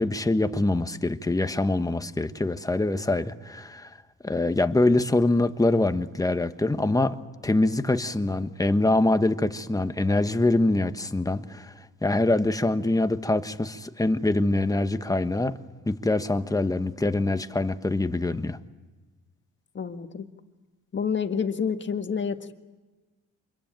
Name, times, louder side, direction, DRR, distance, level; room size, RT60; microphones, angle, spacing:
voice 1, 0.0-3.9 4.2-7.2 7.4-11.7 12.0-15.6 15.9-18.6, left 2 dB, 10° left, 1.3 m, -24 dB
voice 2, 19.8-20.3 20.9-22.5, left 6 dB, 40° left, 1.7 m, -28 dB
26.5 x 22.5 x 9.1 m
cardioid pair, 90°, 30 cm